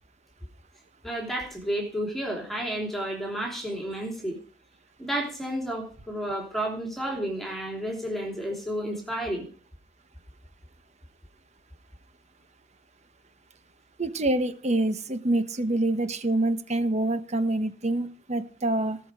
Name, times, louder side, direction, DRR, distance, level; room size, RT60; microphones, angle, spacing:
voice 1, 1.0-4.4 5.0-9.5, right 1 dB, ahead, 0 dB, 3.4 m, -31 dB
voice 2, 14.0-19.0, right 2 dB, 40° right, 11 dB, 1.2 m, -26 dB
18.5 x 6.3 x 4.9 m, 0.42 s
head